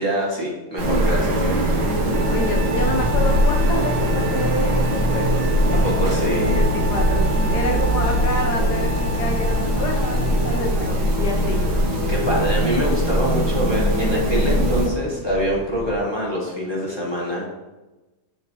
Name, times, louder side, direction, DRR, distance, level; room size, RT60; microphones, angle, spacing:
voice 1, 0.0-1.4 5.8-6.6 7.7-7.8 12.1-17.5, equal, 15° left, -5 dB, 0.9 m, -25 dB
sound 1, 0.8-14.9, equal, 75° right, 1.9 m, -21 dB
sound 2, 1.7-16.0, equal, 30° right, 2.3 m, -36 dB
Trumpet, 2.1-10.7, right 4 dB, 55° right, 1.0 m, -34 dB
voice 2, 2.3-11.6, left 2 dB, 70° left, 2 dB, 1.0 m, -28 dB
9.7 x 3.6 x 2.8 m, 1.1 s
omnidirectional pair, 2.3 m